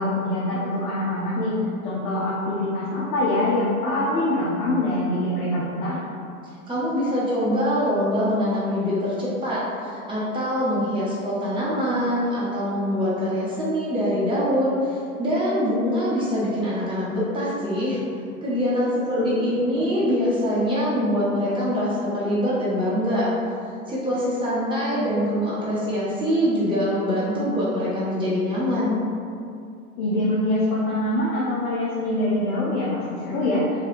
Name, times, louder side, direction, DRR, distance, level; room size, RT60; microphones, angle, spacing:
voice 1, 0.0-1.6 1.8-6.0 19.2-19.8 30.0-33.7, left 1 dB, 35° left, -7 dB, 0.7 m, -24 dB
voice 2, 6.7-18.0 18.4-23.3 23.9-29.1, equal, 10° right, -9 dB, 1.0 m, -24 dB
3.0 x 2.4 x 3.2 m, 2.4 s
hypercardioid pair, 95°, 44 cm